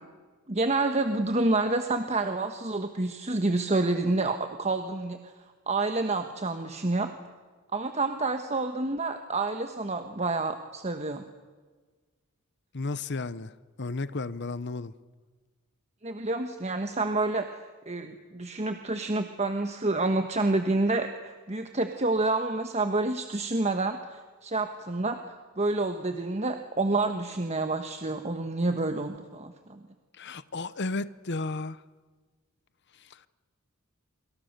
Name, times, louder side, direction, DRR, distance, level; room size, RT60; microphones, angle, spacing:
voice 1, 0.5-5.3 5.7-7.1 7.7-11.2 16.0-17.6 17.9-29.8, right 2 dB, 30° right, 1.3 m, -28 dB
voice 2, 12.7-13.5 13.8-14.9 30.1-31.8 33.1-33.3, left 3 dB, 50° left, 0.9 m, -33 dB
27.5 x 26.5 x 6.8 m
head